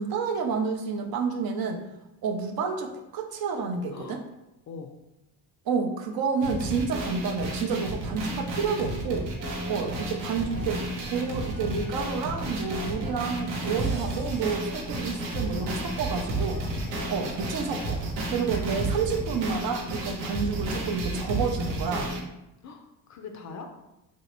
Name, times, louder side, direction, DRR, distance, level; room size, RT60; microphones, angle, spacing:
voice 1, 0.0-1.8 2.2-4.2 5.7-9.3 9.7-16.6 17.1-18.0 18.3-22.1, right 5 dB, 45° right, 4 dB, 0.6 m, -29 dB
voice 2, 3.9-4.2 4.7-4.9 16.8-17.0 20.1-20.3 22.6-23.7, left 5 dB, 35° left, 4 dB, 0.4 m, -42 dB
sound 1, 6.4-22.2, right 2 dB, 85° right, 0.8 m, -32 dB
sound 2, 9.4-18.1, equal, 15° right, 0.8 m, -43 dB
3.1 x 2.7 x 2.9 m, 0.92 s
hypercardioid pair, 65°, 49 cm